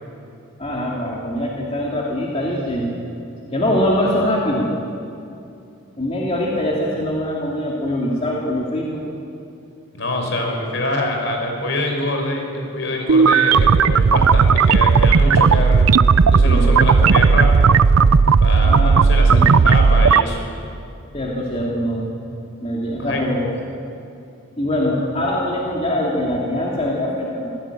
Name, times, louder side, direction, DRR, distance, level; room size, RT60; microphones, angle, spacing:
voice 1, 0.6-2.9 3.5-4.7 6.0-9.0 16.4-16.8 18.6-19.0 19.3-19.5 21.1-22.1 22.6-23.5 24.6-27.5, left 1 dB, 30° left, -3 dB, 2.7 m, -23 dB
voice 2, 9.9-15.9 16.3-17.7 18.4-20.4 23.0-23.2, left 1 dB, 60° left, 2 dB, 5.1 m, -24 dB
sound 1, 13.1-20.2, right 5 dB, 90° right, 0.5 m, -13 dB
25.0 x 16.0 x 9.1 m, 2.6 s
head